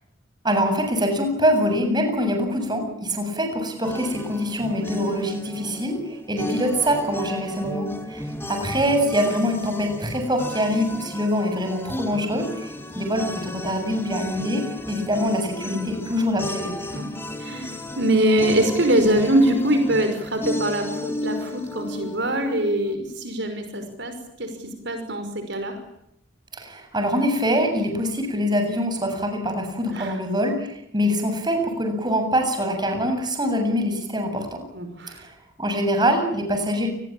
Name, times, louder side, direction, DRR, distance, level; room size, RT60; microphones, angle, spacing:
voice 1, 0.4-16.7 26.5-34.6 35.2-36.9, equal, 25° right, 5 dB, 7.5 m, -24 dB
sound 1, 3.8-23.0, left 1 dB, 10° left, 2.7 m, -34 dB
voice 2, 4.7-5.0 15.7-15.9 16.9-17.1 17.4-25.8 29.9-30.1 34.7-35.2, right 1 dB, 65° right, 7 dB, 5.7 m, -23 dB
29.5 x 21.5 x 8.8 m, 0.77 s
head